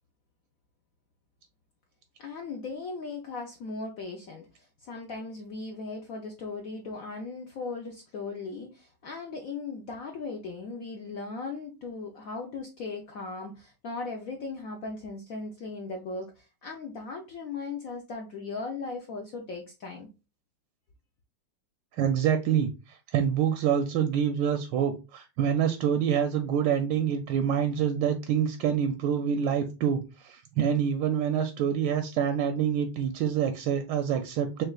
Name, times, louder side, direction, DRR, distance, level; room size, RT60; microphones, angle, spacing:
voice 1, 2.2-20.1, left 3 dB, 70° left, 0.8 m, -38 dB
voice 2, 22.0-34.6, right 8 dB, 75° right, 1.1 m, -26 dB
6.3 x 2.4 x 2.3 m
omnidirectional pair, 2.2 m